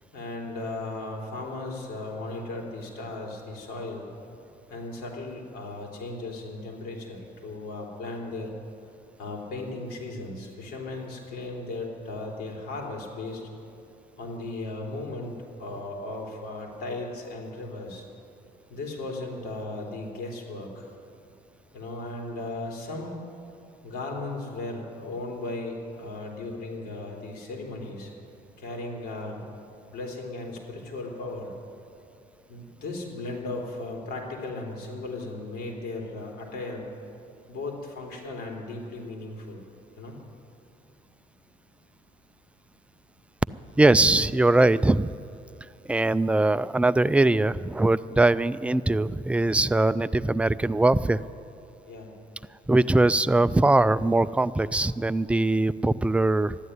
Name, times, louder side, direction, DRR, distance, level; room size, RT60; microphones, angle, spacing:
voice 1, 0.1-4.0 4.7-8.5 9.2-13.5 14.2-18.0 18.7-20.9 21.7-23.2 23.8-28.1 28.6-29.4 29.9-31.5 32.5-36.9 37.5-39.6 40.0-40.2 51.9-52.1, left 2 dB, 65° left, 0 dB, 3.6 m, -36 dB
voice 2, 43.8-45.1 45.9-51.2 52.7-56.6, right 2 dB, 5° right, 15 dB, 0.3 m, -21 dB
13.0 x 11.5 x 9.4 m, 2.7 s
cardioid pair, 110°, 17 cm